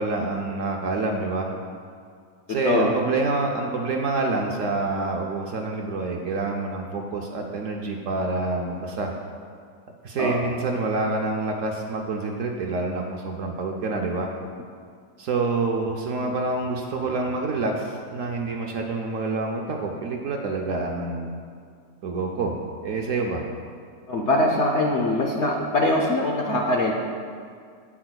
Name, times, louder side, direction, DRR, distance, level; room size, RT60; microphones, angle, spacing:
voice 1, 0.0-1.5 2.5-9.1 10.0-14.4 15.2-21.3 22.0-23.4, right 3 dB, 65° right, 1 dB, 0.9 m, -27 dB
voice 2, 2.5-2.9 10.2-10.4 24.1-26.9, left 2 dB, 60° left, 0 dB, 0.7 m, -22 dB
10.0 x 8.5 x 2.3 m, 2.2 s
omnidirectional pair, 1.7 m